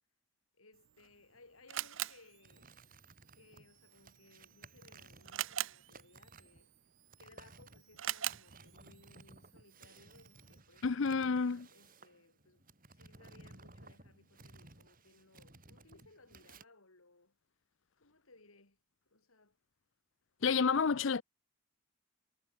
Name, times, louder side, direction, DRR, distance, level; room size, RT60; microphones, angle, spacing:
voice 1, 0.5-2.7 3.3-6.7 7.2-11.3 11.7-17.4 18.0-18.8 19.1-19.6, left 3 dB, 85° left, 4.2 m, -63 dB
Camera, 0.7-10.6, right 13 dB, 65° right, 0.5 m, -45 dB
sound 1, 2.4-16.6, right 3 dB, 40° right, 3.4 m, -58 dB
voice 2, 10.8-11.7 20.4-21.2, left 5 dB, 65° left, 0.6 m, -30 dB
head